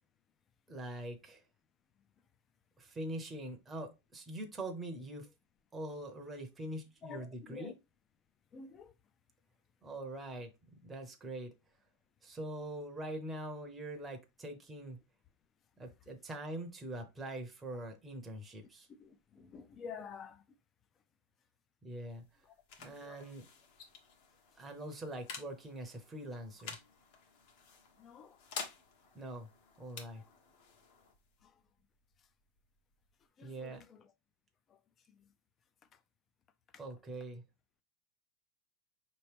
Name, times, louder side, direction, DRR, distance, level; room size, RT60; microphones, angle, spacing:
voice 1, 0.7-1.4 2.8-5.3 5.7-7.7 9.8-10.5 10.8-11.5 12.2-15.0 15.8-18.9 21.8-22.2 22.8-23.4 24.6-26.8 29.1-29.5 29.8-30.2 33.4-33.8 36.8-37.4, right 1 dB, 10° right, 0.7 m, -43 dB
voice 2, 7.0-7.7 8.5-9.0 19.0-20.4 22.4-22.5 22.8-23.3 24.6-24.7 28.0-28.4 30.1-30.3 31.4-31.6 32.2-32.3 33.4-34.1 34.7-34.8 35.1-35.3 35.9-36.0 36.7-36.8, left 6 dB, 20° left, 0.4 m, -50 dB
sound 1, 21.9-33.3, left 6 dB, 50° left, 1.0 m, -51 dB
5.1 x 3.0 x 3.3 m
supercardioid pair, 170°, 0 cm